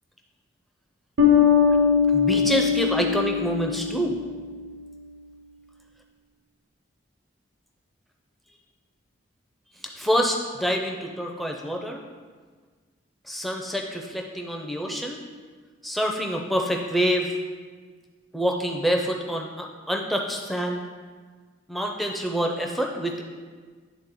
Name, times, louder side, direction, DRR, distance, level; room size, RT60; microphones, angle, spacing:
sound 1, 1.2-4.5, left 7 dB, 65° right, 1.0 m, -21 dB
voice 1, 2.1-4.2 10.0-12.0 13.3-15.2 15.8-17.3 18.3-20.8 21.7-23.2, equal, ahead, 1 dB, 0.5 m, -26 dB
9.7 x 3.6 x 3.7 m, 1.5 s
head